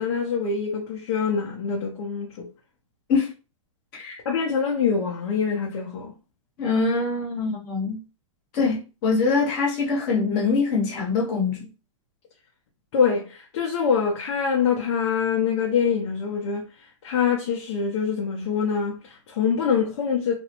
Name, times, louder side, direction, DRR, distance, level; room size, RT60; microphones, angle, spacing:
voice 1, 0.0-2.5 4.2-6.1 12.9-16.7 17.0-20.3, left 6 dB, 55° left, 0.6 m, -24 dB
voice 2, 6.6-8.0 8.5-11.7, left 4 dB, 40° left, 1.0 m, -24 dB
2.5 x 2.0 x 2.8 m
hypercardioid pair, 145°, 17 cm